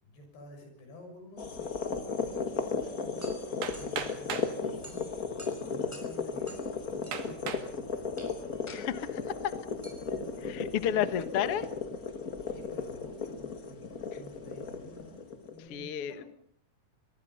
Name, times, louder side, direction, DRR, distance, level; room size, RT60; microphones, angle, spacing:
voice 1, 0.0-8.1 9.8-11.0 11.3-11.7 12.5-16.3, left 1 dB, 80° left, 5 dB, 8.7 m, -50 dB
sound 1, 1.4-15.6, left 5 dB, 40° left, 1.2 m, -36 dB
sound 2, 2.8-11.9, equal, 5° left, 5.6 m, -53 dB
Hammer, 3.6-4.6 5.5-5.6 6.2-6.3 7.1-7.7 8.3-8.7, right 7 dB, 65° right, 3.9 m, -38 dB
voice 2, 8.7-9.6 10.5-11.7 15.7-16.2, left 10 dB, 60° left, 12 dB, 1.6 m, -31 dB
24.5 x 23.5 x 5.7 m, 0.62 s
omnidirectional pair, 4.7 m